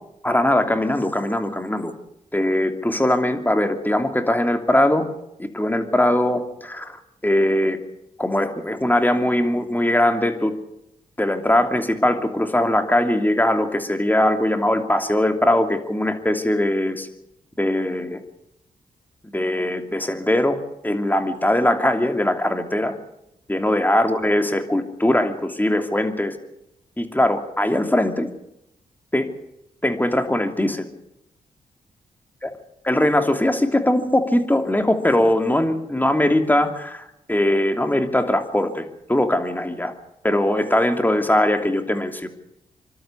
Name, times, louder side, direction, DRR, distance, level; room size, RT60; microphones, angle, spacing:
voice 1, 0.2-1.9 2.3-5.1 5.4-7.8 8.2-10.6 11.2-17.1 17.6-18.2 19.3-20.6 20.8-23.0 23.5-26.4 27.0-28.3 29.1-29.3 29.8-30.9 32.4-32.5 32.8-39.9 40.2-42.3, left 1 dB, 10° left, 6 dB, 2.9 m, -21 dB
24.5 x 12.5 x 8.4 m, 0.84 s
supercardioid pair, 45°, 16 cm